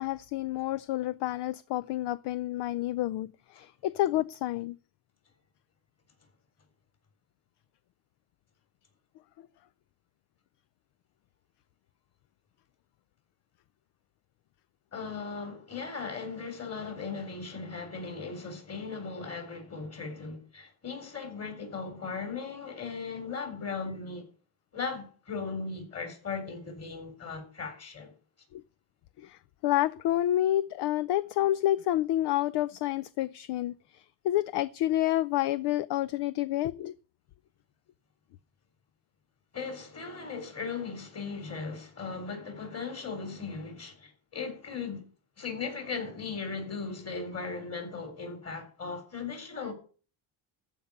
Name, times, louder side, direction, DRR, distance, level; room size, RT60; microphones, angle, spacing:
voice 1, 0.0-4.8 28.5-28.6 29.2-36.9, left 14 dB, 55° left, 0.5 m, -29 dB
voice 2, 14.9-24.2 24.7-28.1 39.5-45.1 45.4-49.7, left 4 dB, 30° left, 4.0 m, -37 dB
14.5 x 5.4 x 8.7 m
cardioid pair, 145°, 49 cm